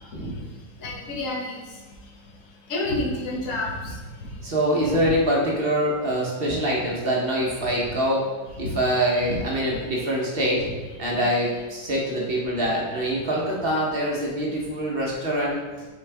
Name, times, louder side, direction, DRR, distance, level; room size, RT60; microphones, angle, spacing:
voice 1, 0.8-1.6 2.7-3.9 4.8-4.9, left 2 dB, 50° left, -5 dB, 1.5 m, -28 dB
voice 2, 4.4-8.3 8.6-10.7 11.0-15.6, equal, 40° right, -3 dB, 1.1 m, -24 dB
6.3 x 4.4 x 3.4 m, 1.3 s
omnidirectional pair, 1.8 m